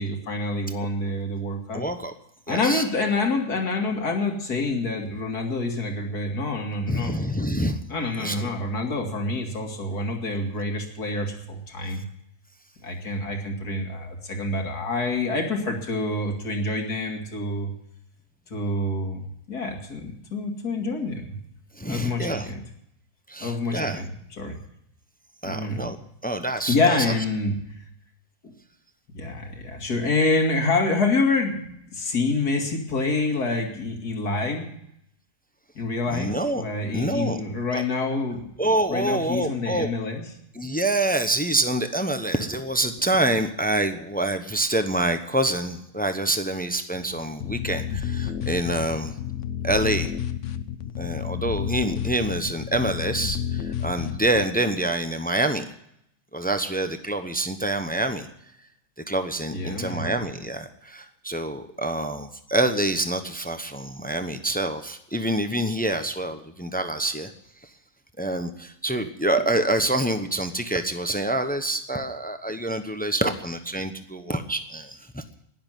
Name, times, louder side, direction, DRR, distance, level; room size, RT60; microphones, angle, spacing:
voice 1, 0.0-1.8 2.5-7.2 7.9-12.0 12.8-17.7 18.5-21.4 21.9-22.6 23.4-24.6 25.4-25.9 26.7-27.6 28.4-28.5 29.1-34.7 35.8-38.5 38.9-40.2 59.5-60.2, left 3 dB, 80° left, 3 dB, 2.8 m, -27 dB
voice 2, 1.7-2.1 2.5-2.8 6.9-7.8 8.2-8.5 21.8-22.5 23.3-24.0 25.4-26.0 26.2-27.1 36.1-36.6 36.9-37.4 37.7-37.8 38.6-39.9 40.5-49.1 49.6-50.1 51.0-55.6 56.3-58.3 59.1-67.3 68.2-75.2, right 1 dB, 10° left, 8 dB, 0.6 m, -26 dB
sound 1, 47.4-54.4, left 9 dB, 60° left, 1.0 m, -30 dB
11.5 x 10.5 x 9.1 m, 0.76 s
omnidirectional pair, 1.6 m